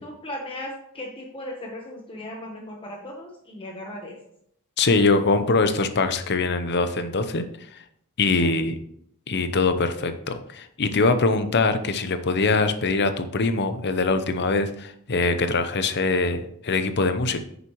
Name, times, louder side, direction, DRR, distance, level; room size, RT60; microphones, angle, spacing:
voice 1, 0.0-4.2 8.4-8.5, left 1 dB, 25° left, 0 dB, 1.1 m, -37 dB
voice 2, 4.8-7.5 8.2-8.8 9.3-17.4, left 3 dB, 50° left, 10 dB, 0.7 m, -23 dB
9.3 x 6.6 x 3.1 m, 0.70 s
head